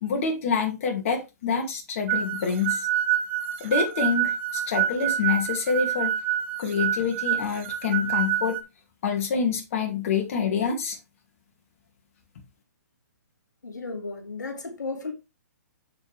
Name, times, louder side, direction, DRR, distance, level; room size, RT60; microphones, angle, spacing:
voice 1, 0.0-2.9 3.6-6.1 6.6-8.6 9.0-11.0, left 6 dB, 50° left, 2.4 m, -26 dB
sound 1, 2.1-8.6, right 11 dB, 40° right, 1.3 m, -27 dB
voice 2, 13.6-15.1, left 3 dB, 85° left, 2.4 m, -34 dB
7.4 x 6.4 x 3.4 m
hypercardioid pair, 130°, 10 cm